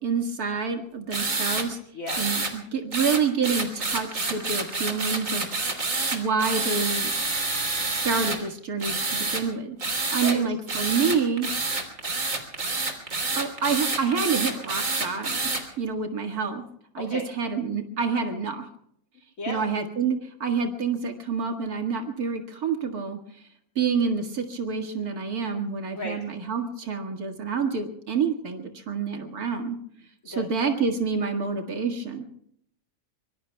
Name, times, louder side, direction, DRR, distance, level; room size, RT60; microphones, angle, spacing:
voice 1, 0.0-1.8 2.2-5.5 6.1-7.1 7.8-11.5 13.4-15.4 15.8-16.6 16.9-18.7 19.5-23.5 23.8-29.8 30.3-32.2, right 5 dB, 90° right, 4 dB, 2.3 m, -28 dB
sound 1, 1.1-1.7 2.1-2.5 2.9-8.4 8.8-9.4 9.8-10.4 10.7-15.6, right 3 dB, 60° right, 3.4 m, -28 dB
voice 2, 1.9-2.2 10.2-10.4 17.1-17.2 19.4-19.6 25.9-26.2 30.3-30.4, left 2 dB, 65° left, -1 dB, 2.6 m, -33 dB
24.5 x 24.5 x 2.3 m, 0.69 s
omnidirectional pair, 1.5 m